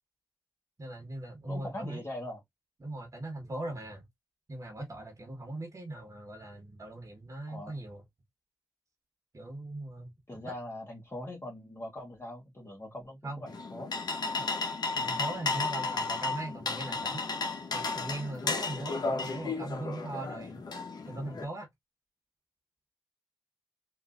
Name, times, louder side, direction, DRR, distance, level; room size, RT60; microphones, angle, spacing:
voice 1, 0.8-2.0 2.8-4.0 4.5-8.0 9.3-10.5 13.2-13.4 14.9-17.3 17.7-20.6 21.1-21.7, right 1 dB, 45° right, 1.2 m, -40 dB
voice 2, 1.5-2.4 7.5-7.8 10.3-13.9, left 1 dB, 30° left, 1.5 m, -41 dB
sound 1, 13.5-21.4, left 4 dB, 65° left, 0.9 m, -33 dB
3.6 x 2.6 x 2.4 m
cardioid pair, 45°, 8 cm